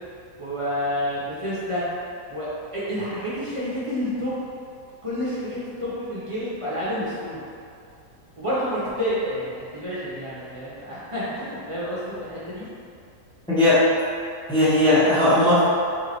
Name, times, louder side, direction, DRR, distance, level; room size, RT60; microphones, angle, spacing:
voice 1, 0.4-1.8 2.3-4.3 5.0-7.4 8.4-12.6, equal, 30° right, -10 dB, 0.6 m, -29 dB
voice 2, 13.5-13.8 14.5-15.7, left 1 dB, 5° left, -12 dB, 0.3 m, -17 dB
3.6 x 3.1 x 3.9 m, 2.4 s
omnidirectional pair, 1.7 m